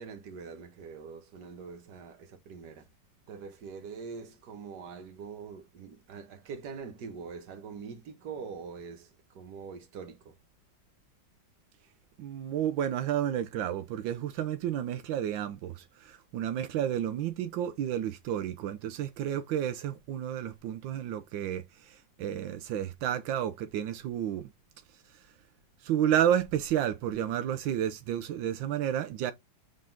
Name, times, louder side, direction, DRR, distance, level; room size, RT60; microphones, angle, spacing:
voice 1, 0.0-2.9 3.3-10.4, right 5 dB, 60° right, 1.7 m, -44 dB
voice 2, 12.2-24.5 24.9-25.3 25.8-29.3, right 10 dB, 85° right, 1.4 m, -31 dB
7.4 x 3.7 x 3.8 m
omnidirectional pair, 2.0 m